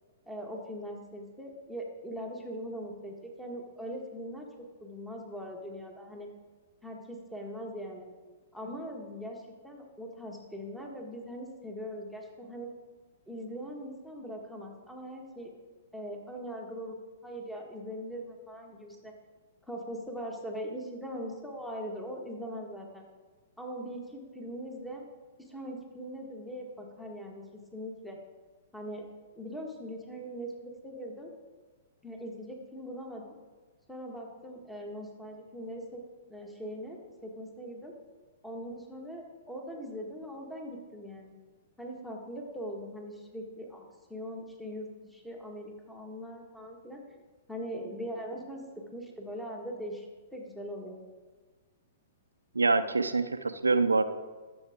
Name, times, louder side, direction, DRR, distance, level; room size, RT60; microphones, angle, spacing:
voice 1, 0.3-6.3 6.8-8.1 8.5-12.7 13.3-15.5 15.9-17.0 17.2-19.1 19.6-23.1 23.6-25.1 25.4-27.4 27.7-28.2 28.7-29.1 29.3-31.3 32.0-33.3 33.9-36.0 36.3-37.9 38.4-41.3 41.8-43.8 44.1-47.0 47.5-48.6 48.9-51.0, equal, ahead, 0 dB, 1.5 m, -41 dB
voice 2, 52.5-54.0, right 3 dB, 90° right, 11 dB, 0.5 m, -25 dB
13.0 x 7.0 x 3.6 m, 1.3 s
hypercardioid pair, 115°, 0 cm